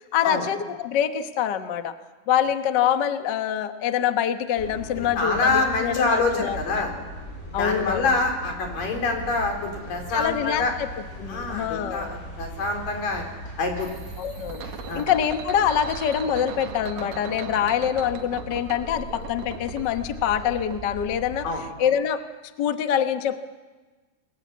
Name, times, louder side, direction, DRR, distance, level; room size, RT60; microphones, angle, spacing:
voice 1, 0.0-1.9 2.3-6.8 7.5-8.1 10.1-10.9 11.2-12.2 14.2-14.6 14.9-21.5 21.8-22.2 22.6-23.4, left 9 dB, 65° left, 8 dB, 1.1 m, -25 dB
sound 1, 4.6-21.6, equal, 20° left, 6.5 m, -39 dB
voice 2, 5.0-6.9 7.6-10.7 11.3-13.2 13.6-13.9 14.9-15.1 21.4-21.6, left 3 dB, 90° left, 3 dB, 5.8 m, -26 dB
sound 2, 13.8-20.8, right 7 dB, 60° right, 2.7 m, -40 dB
28.0 x 21.0 x 8.4 m, 1.3 s
omnidirectional pair, 3.8 m